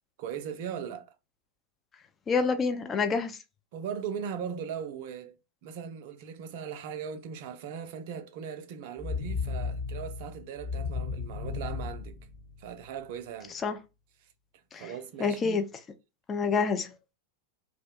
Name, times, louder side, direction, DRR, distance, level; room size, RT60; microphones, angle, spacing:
voice 1, 0.2-1.1 3.7-5.3 5.6-12.2 12.6-13.6 14.7-15.6, right 7 dB, 50° right, 0.4 m, -39 dB
voice 2, 2.3-3.4 13.6-13.8 14.7-14.9 15.2-15.6 16.3-16.9, left 5 dB, 20° left, 0.4 m, -27 dB
sound 1, 9.0-13.0, left 5 dB, 40° left, 1.0 m, -35 dB
2.4 x 2.2 x 2.7 m
figure-of-eight pair, 90°, 0 cm